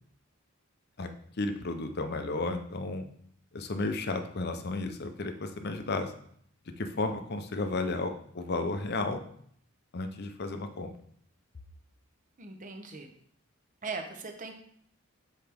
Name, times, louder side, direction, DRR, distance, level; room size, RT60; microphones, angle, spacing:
voice 1, 1.4-3.1 3.5-6.1 6.8-9.2 9.9-10.9, left 2 dB, 45° left, 7 dB, 0.6 m, -33 dB
voice 2, 12.4-13.1 13.8-14.6, right 4 dB, 35° right, 4 dB, 0.8 m, -39 dB
7.9 x 4.4 x 3.4 m, 0.64 s
head